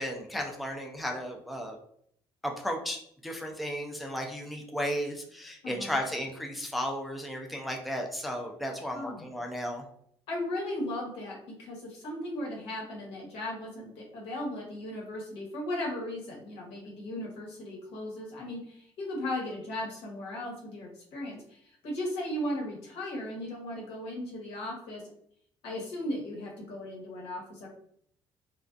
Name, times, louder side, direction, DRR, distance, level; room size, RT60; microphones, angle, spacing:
voice 1, 0.0-1.8 2.4-9.8, equal, ahead, 1 dB, 0.4 m, -34 dB
voice 2, 5.6-6.0 8.9-9.2 10.3-25.0 25.6-27.7, left 1 dB, 80° left, -2 dB, 1.1 m, -37 dB
2.3 x 2.3 x 2.5 m, 0.66 s
cardioid pair, 100°, 10 cm